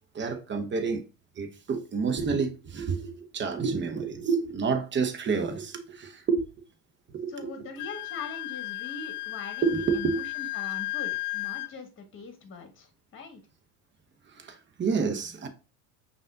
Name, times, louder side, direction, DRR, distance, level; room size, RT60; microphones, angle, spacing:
voice 1, 0.1-1.0 1.3-6.4 7.1-7.5 9.6-10.2 14.2-15.5, right 5 dB, 25° right, 1.0 m, -29 dB
voice 2, 7.3-13.4, left 4 dB, 25° left, 1.4 m, -42 dB
Wind instrument woodwind instrument, 7.8-11.7, left 19 dB, 75° left, 0.6 m, -34 dB
5.3 x 2.7 x 3.7 m
hypercardioid pair, 75°, 44 cm